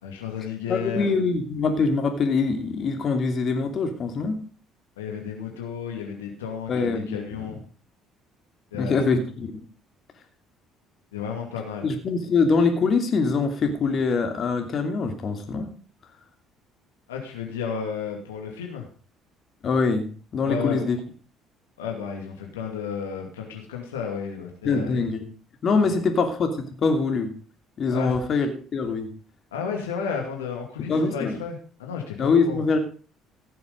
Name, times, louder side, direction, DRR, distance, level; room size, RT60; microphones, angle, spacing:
voice 1, 0.0-1.1 5.0-7.6 8.7-9.0 11.1-11.9 17.1-18.9 20.4-20.8 21.8-25.1 25.9-26.0 27.9-28.2 29.5-32.6, left 6 dB, 85° left, 1 dB, 2.4 m, -32 dB
voice 2, 0.7-4.4 6.7-7.6 8.7-9.6 11.8-15.7 19.6-20.1 20.3-21.0 24.6-25.3 25.6-26.5 26.8-27.3 27.8-29.1 30.9-31.4 32.2-32.8, left 4 dB, 50° left, 6 dB, 2.8 m, -24 dB
16.5 x 7.1 x 5.3 m, 0.39 s
hypercardioid pair, 60°, 0 cm